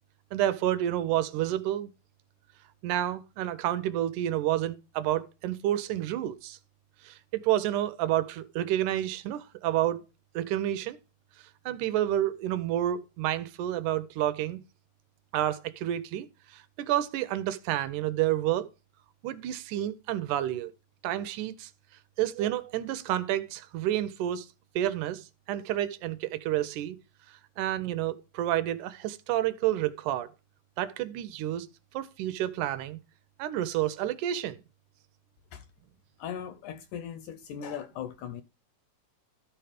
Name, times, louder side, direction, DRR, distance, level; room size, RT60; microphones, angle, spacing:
voice 1, 0.3-1.9 2.8-6.6 7.0-10.0 10.4-11.0 11.7-14.6 15.3-18.7 19.2-20.7 21.0-21.7 22.2-24.5 24.8-27.0 27.3-30.3 30.8-31.7 31.9-33.0 33.4-34.6, right 12 dB, 75° right, 2.0 m, -29 dB
voice 2, 36.2-38.4, left 8 dB, 80° left, 1.8 m, -38 dB
13.0 x 4.6 x 4.9 m
omnidirectional pair, 4.0 m